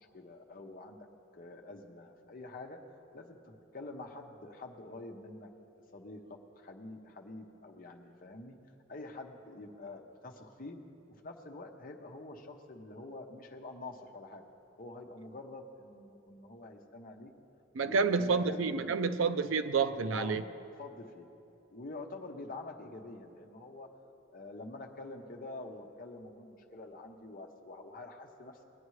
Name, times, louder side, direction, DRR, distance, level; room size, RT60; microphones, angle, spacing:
voice 1, 0.1-1.0 1.3-2.8 3.1-6.2 6.6-8.6 8.9-10.8 11.2-14.5 14.8-17.3 17.8-19.0 20.1-20.4 20.8-21.3 21.7-23.9 24.3-28.7, left 2 dB, 45° left, 2 dB, 0.9 m, -47 dB
voice 2, 17.7-20.4, right 5 dB, 90° right, 12 dB, 0.5 m, -29 dB
19.5 x 9.6 x 3.2 m, 2.8 s
head